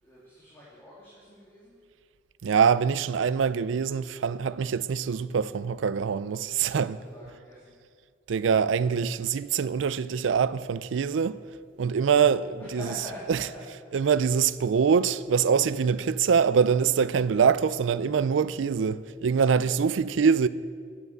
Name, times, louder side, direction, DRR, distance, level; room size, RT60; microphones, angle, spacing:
voice 1, 0.0-1.8 6.5-7.8 12.6-13.6, left 1 dB, 10° left, 2.7 m, -44 dB
voice 2, 2.4-7.0 8.3-11.4 11.8-12.8 13.3-13.4 13.9-20.5, right 6 dB, 75° right, 0.4 m, -24 dB
11.5 x 8.1 x 8.0 m
head